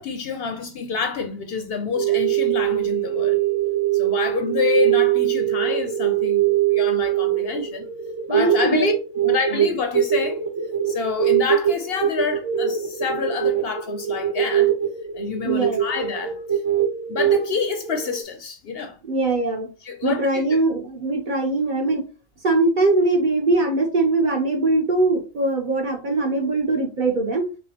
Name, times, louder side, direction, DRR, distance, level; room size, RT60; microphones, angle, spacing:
voice 1, 0.0-3.4 3.9-7.9 8.3-8.9 9.3-10.4 10.9-14.7 15.1-16.6 17.1-19.0 19.8-20.6, left 5 dB, 65° left, 0.7 m, -28 dB
sound 1, 1.9-18.2, right 10 dB, 85° right, 1.2 m, -22 dB
voice 2, 8.3-8.9 9.5-9.7 15.4-16.0 19.0-19.7 20.0-22.0 22.4-27.5, right 2 dB, 45° right, 0.8 m, -21 dB
5.2 x 2.3 x 2.8 m
omnidirectional pair, 1.3 m